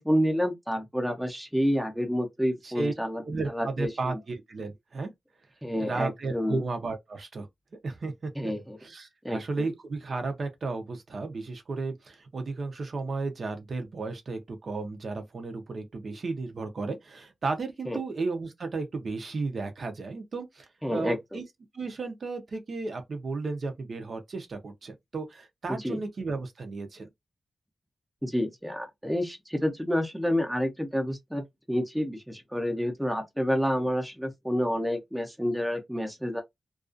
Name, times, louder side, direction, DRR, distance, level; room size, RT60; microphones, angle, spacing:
voice 1, 0.0-3.2 3.5-4.2 5.6-6.6 8.4-8.8 9.2-9.7 17.9-18.0 20.8-21.4 25.7-26.0 28.2-36.4, equal, 5° right, 0.6 m, -29 dB
voice 2, 3.2-5.1 5.8-7.5 7.8-8.3 8.8-21.4 21.7-27.1, right 3 dB, 55° right, 0.6 m, -34 dB
2.4 x 2.3 x 2.4 m
wide cardioid pair, 120°, 0 cm